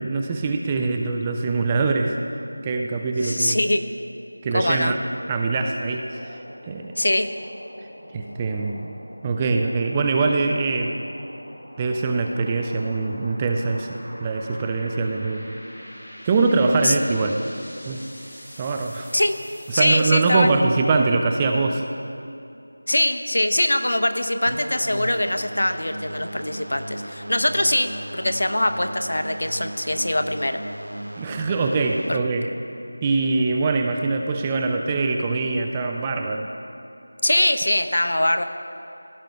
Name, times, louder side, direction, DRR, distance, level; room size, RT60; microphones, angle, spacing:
voice 1, 0.0-2.2 2.6-3.6 4.4-5.0 5.3-6.4 6.7-6.9 8.1-8.9 9.2-11.0 11.8-15.5 16.2-17.4 17.9-18.0 18.6-19.1 19.7-21.8 31.1-32.5 33.0-36.5, right 3 dB, 15° right, 3 dB, 0.3 m, -23 dB
voice 2, 3.2-3.8 4.5-4.9 7.0-7.3 16.8-17.0 19.1-19.4 19.7-20.6 22.9-30.6 32.1-32.2 37.2-38.4, left 1 dB, 70° left, 8 dB, 0.6 m, -22 dB
sound 1, 5.8-20.3, equal, 20° left, 1.9 m, -44 dB
sound 2, 24.5-32.1, right 1 dB, 80° right, 0.6 m, -36 dB
16.0 x 7.4 x 2.3 m, 2.7 s
figure-of-eight pair, 170°, 0 cm